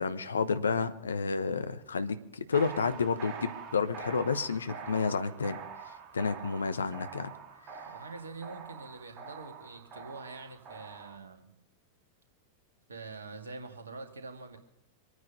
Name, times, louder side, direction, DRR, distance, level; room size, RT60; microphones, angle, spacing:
voice 1, 0.0-5.6 6.1-7.3, left 5 dB, 70° left, 11 dB, 1.0 m, -30 dB
sound 1, 2.5-11.2, right 6 dB, 35° right, 1.8 m, -45 dB
voice 2, 7.9-11.5 12.9-14.6, right 3 dB, 75° right, 5 dB, 2.1 m, -45 dB
24.5 x 9.5 x 5.4 m, 0.80 s
figure-of-eight pair, 90°, 0 cm